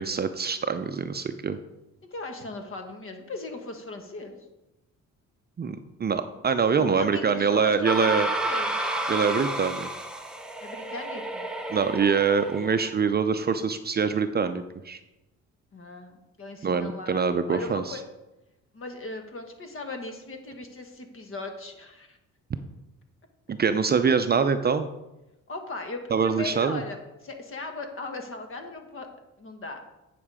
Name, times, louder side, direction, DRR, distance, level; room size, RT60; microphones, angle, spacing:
voice 1, 0.0-1.6 5.6-8.3 9.1-9.9 11.7-15.0 16.6-18.0 23.5-24.9 26.1-26.8, right 6 dB, 35° right, 10 dB, 0.6 m, -24 dB
voice 2, 2.1-4.4 6.8-9.0 10.6-11.5 15.7-18.0 18.7-22.2 25.5-29.1 29.4-29.8, left 2 dB, 45° left, 5 dB, 1.6 m, -38 dB
sound 1, 7.8-12.9, right 1 dB, 5° right, 1.0 m, -31 dB
9.2 x 5.9 x 4.9 m, 0.98 s
cardioid pair, 90°, 30 cm